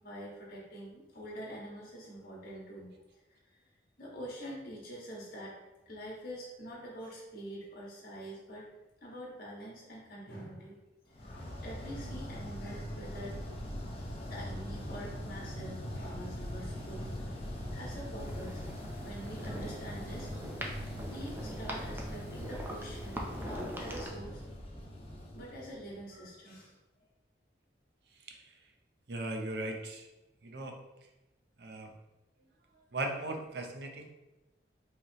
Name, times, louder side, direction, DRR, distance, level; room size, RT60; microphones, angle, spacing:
voice 1, 0.0-2.9 4.0-5.6 5.9-8.7 9.0-10.8 11.2-13.3 14.3-17.3 17.6-18.7 18.9-20.3 21.0-24.4 25.3-26.7, equal, 55° left, -4 dB, 1.6 m, -45 dB
sound 1, 11.1-26.2, equal, 30° left, 0.8 m, -41 dB
sound 2, 18.2-24.1, equal, 10° right, 0.5 m, -43 dB
voice 2, 29.1-30.1 30.4-30.8 31.6-31.9 32.9-34.1, right 2 dB, 60° right, 3 dB, 0.6 m, -38 dB
5.4 x 3.2 x 3.0 m, 1.0 s
head